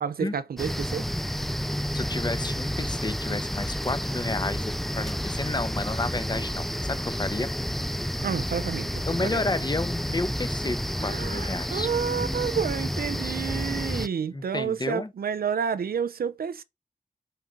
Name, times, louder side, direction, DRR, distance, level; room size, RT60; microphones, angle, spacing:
voice 1, 0.0-1.1 8.2-9.4 11.0-16.6, right 7 dB, 85° right, 0.6 m, -30 dB
sound 1, 0.6-14.1, equal, ahead, 0.4 m, -30 dB
voice 2, 1.9-7.5 9.1-11.9 14.3-15.1, left 2 dB, 30° left, 0.9 m, -31 dB
8.4 x 3.9 x 5.1 m
cardioid pair, 55°, 15 cm